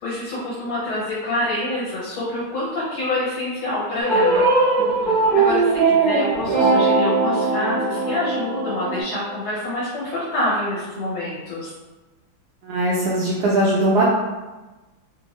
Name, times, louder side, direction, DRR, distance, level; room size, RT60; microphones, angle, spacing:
voice 1, 0.0-4.5 5.0-11.7, left 1 dB, 75° left, -9 dB, 1.7 m, -27 dB
sound 1, 4.0-9.0, right 3 dB, 55° right, 1.3 m, -19 dB
voice 2, 4.8-5.1 12.6-14.0, right 1 dB, 80° right, -6 dB, 0.9 m, -21 dB
3.5 x 2.5 x 3.0 m, 1.2 s
omnidirectional pair, 2.3 m